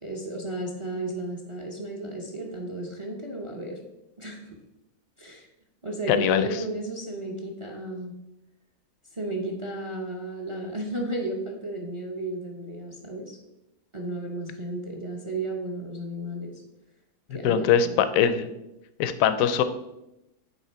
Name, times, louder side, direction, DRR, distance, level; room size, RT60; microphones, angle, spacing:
voice 1, 0.0-3.8 4.2-4.6 5.2-5.5 5.8-8.1 9.1-13.4 13.9-16.6 17.3-18.1, right 2 dB, 35° right, 1 dB, 0.5 m, -33 dB
voice 2, 6.1-6.5 17.4-18.5 19.0-19.6, left 8 dB, 70° left, 11 dB, 0.9 m, -22 dB
8.3 x 3.1 x 4.5 m, 0.90 s
omnidirectional pair, 1.6 m